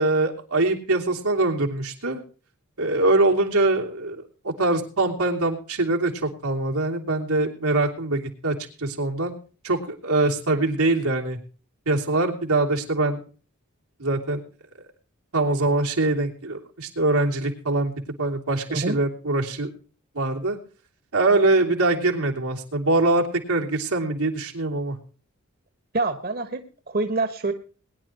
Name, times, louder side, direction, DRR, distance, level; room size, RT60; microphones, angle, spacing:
voice 1, 0.0-2.2 2.8-9.3 9.6-11.4 11.9-13.2 14.0-14.4 15.3-17.9 18.2-19.7 20.1-20.6 21.1-25.0, right 2 dB, 90° right, 1 dB, 2.9 m, -23 dB
voice 2, 25.9-27.5, right 3 dB, 45° right, 8 dB, 1.3 m, -26 dB
21.5 x 10.5 x 2.9 m, 0.37 s
head